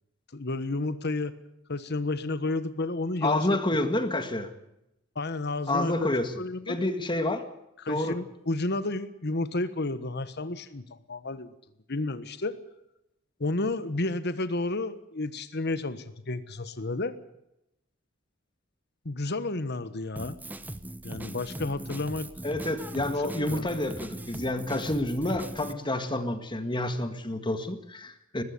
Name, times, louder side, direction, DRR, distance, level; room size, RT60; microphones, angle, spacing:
voice 1, 0.3-1.3 1.7-3.5 5.1-6.8 7.8-11.5 11.9-12.6 13.4-17.2 19.0-20.4 21.0-22.3 22.9-23.0 23.3-23.7, left 2 dB, 55° left, 12 dB, 1.4 m, -31 dB
voice 2, 3.2-4.5 5.7-6.3 6.7-7.4 7.9-8.2 22.4-28.4, left 1 dB, 25° left, 9 dB, 1.8 m, -29 dB
Drum kit, 20.2-25.7, right 1 dB, 10° right, 1.0 m, -39 dB
20.5 x 15.5 x 9.5 m, 0.85 s
head